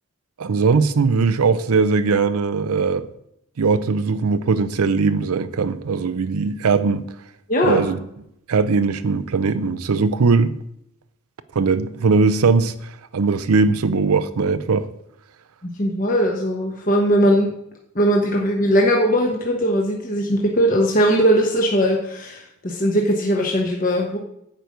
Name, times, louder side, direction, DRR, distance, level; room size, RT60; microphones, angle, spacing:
voice 1, 0.4-3.1 3.6-7.0 7.6-8.0 8.5-10.5 11.6-14.9, right 4 dB, 80° right, 0.5 m, -19 dB
voice 2, 7.5-7.8 15.8-17.5 17.9-24.2, equal, 35° left, 1.1 m, -19 dB
8.9 x 5.2 x 7.8 m
head